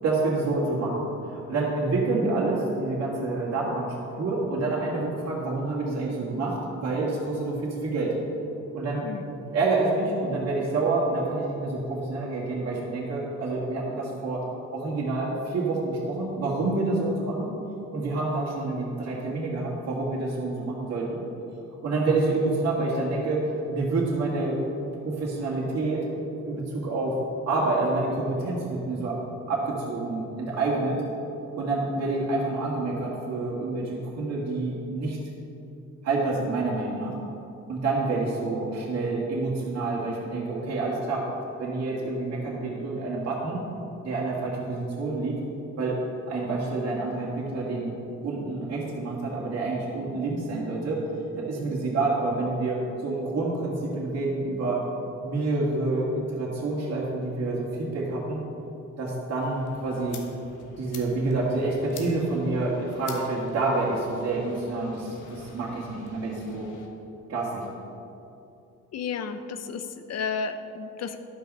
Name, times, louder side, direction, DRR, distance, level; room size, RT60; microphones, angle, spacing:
voice 1, 0.0-8.1 8.7-14.4 14.7-17.5 17.9-21.2 21.8-24.6 25.0-26.0 26.4-27.1 27.5-29.2 29.5-31.0 31.6-35.2 36.0-37.2 37.7-41.2 41.6-43.6 44.0-45.4 45.8-46.0 46.3-48.0 48.2-51.0 51.4-54.8 55.2-58.4 59.0-60.2 60.8-66.7 67.3-67.6, right 3 dB, 55° right, -6 dB, 2.1 m, -28 dB
sound 1, 59.4-66.9, left 4 dB, 80° left, 1.3 m, -48 dB
voice 2, 68.9-71.2, left 5 dB, 60° left, 10 dB, 0.7 m, -32 dB
11.5 x 5.8 x 5.4 m, 2.9 s
cardioid pair, 90°, 30 cm